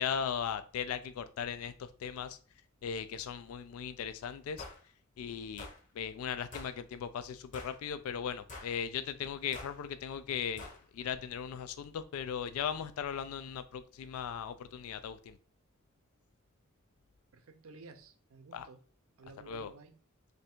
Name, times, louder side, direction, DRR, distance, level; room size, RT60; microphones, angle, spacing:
voice 1, 0.0-2.4 2.8-4.6 5.2-5.7 5.9-15.4 18.5-18.7 19.5-19.7, left 7 dB, 80° left, 12 dB, 0.3 m, -38 dB
sound 1, 4.6-4.8 5.6-5.8 6.5-6.8 7.5-7.8 8.5-8.8 9.5-9.8 10.6-10.8, left 2 dB, 35° left, 0.8 m, -46 dB
voice 2, 17.3-18.8 19.2-20.0, right 4 dB, 75° right, 9 dB, 0.5 m, -54 dB
3.2 x 2.6 x 4.3 m, 0.40 s
head